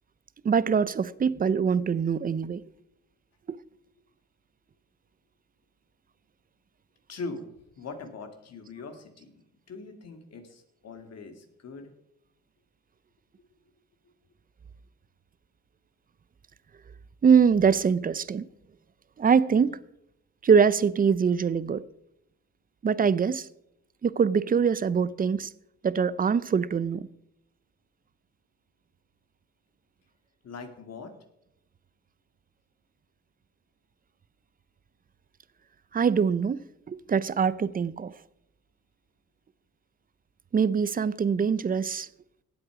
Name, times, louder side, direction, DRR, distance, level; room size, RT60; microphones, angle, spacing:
voice 1, 0.4-2.6 17.2-18.5 19.2-19.8 20.4-21.8 22.8-23.5 24.0-25.5 25.8-27.1 35.9-36.6 36.9-38.1 40.5-42.1, right 6 dB, 30° right, 0.6 m, -23 dB
voice 2, 7.1-7.5 7.8-11.9 30.4-31.1, left 3 dB, 55° left, 2.3 m, -41 dB
17.0 x 7.9 x 4.9 m
cardioid pair, 90°, 30 cm